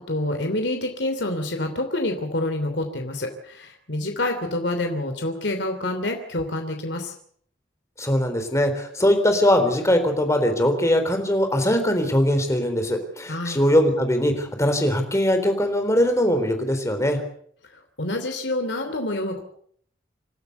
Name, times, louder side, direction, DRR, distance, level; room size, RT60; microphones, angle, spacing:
voice 1, 0.1-7.1 13.3-13.6 18.0-19.4, left 1 dB, 70° left, 5 dB, 3.0 m, -27 dB
voice 2, 8.0-17.2, equal, 15° left, 6 dB, 3.8 m, -21 dB
28.0 x 12.5 x 8.1 m, 0.62 s
head